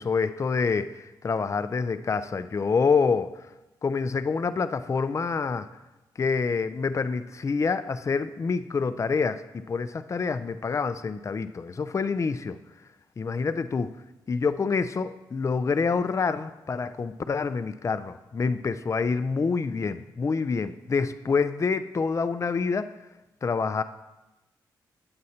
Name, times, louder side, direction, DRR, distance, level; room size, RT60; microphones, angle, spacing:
voice 1, 0.0-3.3 3.8-5.7 6.2-12.6 13.2-13.9 14.3-22.9 23.4-23.8, left 5 dB, 35° left, 12 dB, 0.4 m, -27 dB
8.2 x 7.6 x 2.8 m, 1.0 s
supercardioid pair, 55°, 8 cm